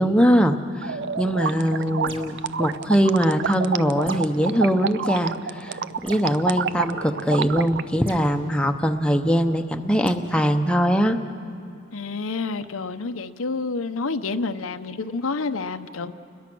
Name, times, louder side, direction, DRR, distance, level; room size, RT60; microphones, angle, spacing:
voice 1, 0.0-11.2, equal, 5° left, 0.8 m, -22 dB
sound 1, 0.8-7.8, right 6 dB, 55° right, 0.5 m, -29 dB
sound 2, 2.0-2.5 4.0-4.4 6.1-6.4 8.1-8.3 10.0-10.3, right 2 dB, 25° right, 1.6 m, -41 dB
voice 2, 11.9-16.1, left 4 dB, 85° left, 0.8 m, -29 dB
29.5 x 21.5 x 6.1 m
head